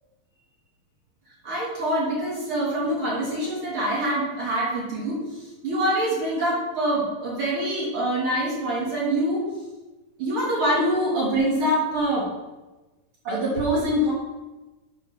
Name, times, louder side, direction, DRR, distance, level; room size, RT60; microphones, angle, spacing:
voice 1, 1.4-9.5 10.2-12.3 13.2-14.1, right 1 dB, 50° right, -5 dB, 1.8 m, -25 dB
7.1 x 5.8 x 5.7 m, 1.2 s
omnidirectional pair, 4.3 m